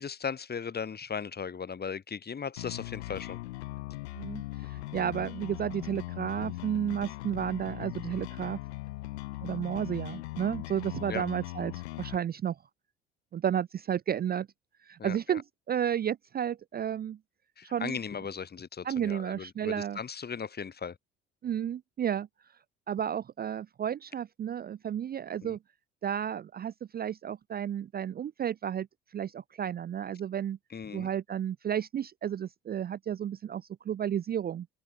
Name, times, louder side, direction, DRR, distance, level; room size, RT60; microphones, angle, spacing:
voice 1, 0.0-3.4 6.4-6.5 11.1-11.2 15.0-15.4 17.6-21.0 25.4-25.6 30.7-31.1, left 6 dB, 30° left, 2.0 m, -37 dB
sound 1, 2.6-12.2, left 18 dB, 80° left, 0.7 m, -39 dB
voice 2, 4.1-8.6 9.4-12.6 13.3-14.5 14.8-17.2 17.6-18.0 18.8-20.0 21.4-22.3 22.9-25.6 26.0-28.9 29.1-30.6 30.9-34.7, right 9 dB, 30° right, 0.5 m, -32 dB
open air
hypercardioid pair, 65°, 33 cm